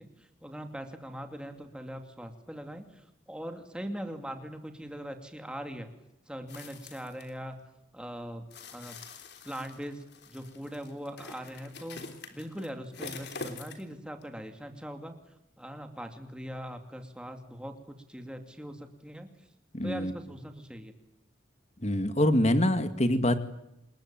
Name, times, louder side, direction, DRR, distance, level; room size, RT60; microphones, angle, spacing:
voice 1, 0.0-5.9 6.3-7.6 7.9-9.0 9.4-12.0 12.3-15.2 15.6-19.3 19.8-20.9, equal, 5° right, 5 dB, 2.6 m, -41 dB
sound 1, 6.5-7.3 8.5-13.9 14.2-14.3, left 3 dB, 55° left, 3.4 m, -45 dB
voice 2, 19.7-20.1 21.8-23.3, left 1 dB, 35° left, 9 dB, 2.1 m, -25 dB
28.0 x 21.5 x 9.0 m, 0.85 s
head